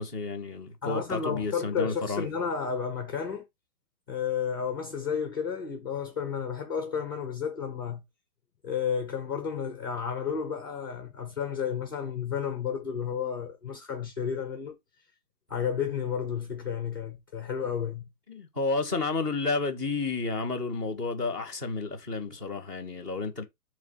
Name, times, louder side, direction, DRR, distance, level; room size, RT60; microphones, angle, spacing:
voice 1, 0.0-2.3 18.3-23.4, left 3 dB, 10° right, 0.9 m, -31 dB
voice 2, 0.8-3.4 4.1-8.0 8.6-14.8 15.5-18.1, left 7 dB, 15° left, 0.8 m, -32 dB
7.0 x 3.0 x 5.6 m
hypercardioid pair, 180°, 46 cm